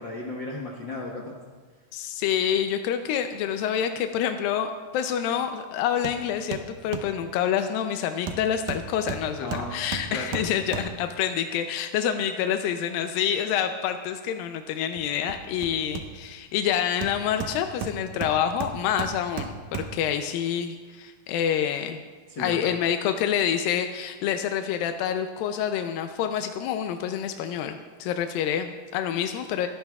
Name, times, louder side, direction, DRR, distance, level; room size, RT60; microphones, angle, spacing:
voice 1, 0.0-1.3 9.4-9.7 10.1-10.2 22.3-22.8, left 2 dB, 60° left, -3 dB, 1.2 m, -34 dB
voice 2, 1.9-22.0 22.4-29.7, left 9 dB, 90° left, 7 dB, 2.4 m, -27 dB
Hammer, 6.0-6.2 6.5-7.2 8.3-11.2 15.0-16.4 17.0-20.1 20.6-20.7, right 6 dB, 75° right, 2.2 m, -35 dB
28.5 x 10.5 x 2.4 m, 1.4 s
omnidirectional pair, 4.0 m